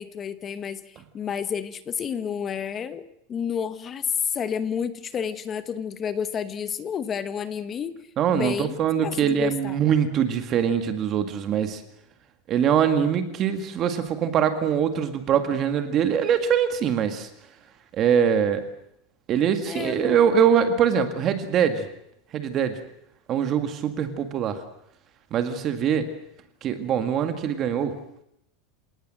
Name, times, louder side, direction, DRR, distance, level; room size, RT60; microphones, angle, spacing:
voice 1, 0.0-8.0 8.3-8.8 9.0-9.8 19.7-20.3, left 7 dB, 20° left, 13 dB, 1.1 m, -30 dB
voice 2, 8.2-11.8 12.5-17.3 17.9-18.7 19.3-21.8 22.3-22.8 23.3-24.6 25.3-26.1 26.6-28.0, right 8 dB, 30° right, 9 dB, 1.9 m, -23 dB
28.0 x 18.5 x 7.6 m, 0.78 s
supercardioid pair, 170°, 0 cm